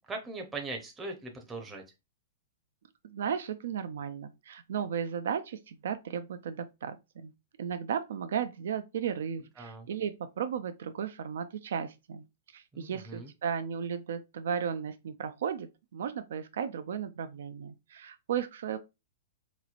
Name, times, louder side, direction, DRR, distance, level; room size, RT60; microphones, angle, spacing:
voice 1, 0.1-1.8 9.6-9.8 12.7-13.3, right 3 dB, 10° right, 0.6 m, -40 dB
voice 2, 3.0-7.3 7.6-12.2 12.5-18.8, right 7 dB, 75° right, 0.3 m, -35 dB
3.9 x 3.0 x 2.4 m
hypercardioid pair, 155°, 0 cm